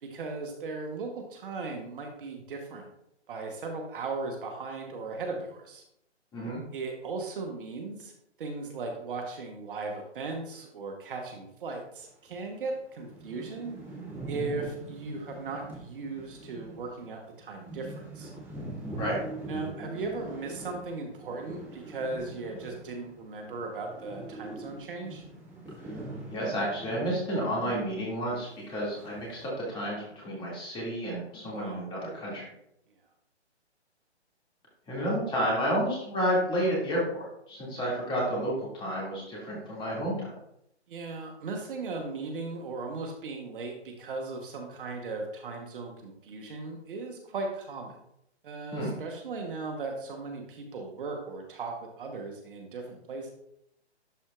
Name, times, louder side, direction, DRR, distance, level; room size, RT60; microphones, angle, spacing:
voice 1, 0.0-2.9 3.3-5.8 6.7-8.1 8.4-13.8 14.3-18.3 19.5-25.2 31.5-31.8 40.9-48.0 48.4-53.3, right 3 dB, 50° right, 3 dB, 1.2 m, -37 dB
sound 1, 12.3-12.4 12.7-12.8 13.0-23.2 23.5-28.0 28.2-28.3 29.0-29.4, right 2 dB, 5° right, 1.4 m, -42 dB
voice 2, 26.3-32.4 34.9-40.3 48.7-48.9, equal, 15° left, -5 dB, 2.4 m, -31 dB
11.5 x 4.4 x 2.5 m, 0.77 s
hypercardioid pair, 145°, 34 cm